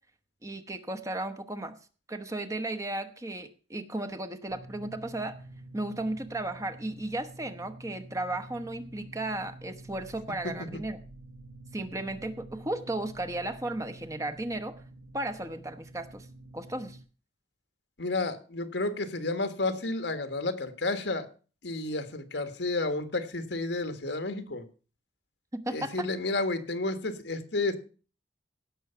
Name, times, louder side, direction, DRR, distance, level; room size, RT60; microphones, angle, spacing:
voice 1, 0.4-1.7 2.1-5.3 5.7-11.0 11.7-14.8 15.1-16.3 16.5-17.0 25.5-26.1, right 1 dB, 20° right, 8 dB, 1.0 m, -35 dB
sound 1, 4.5-17.0, right 1 dB, 70° right, 1.4 m, -48 dB
voice 2, 18.0-21.3 21.6-24.6 25.7-27.8, left 2 dB, 75° left, 9 dB, 1.5 m, -31 dB
17.0 x 6.3 x 5.7 m, 0.38 s
head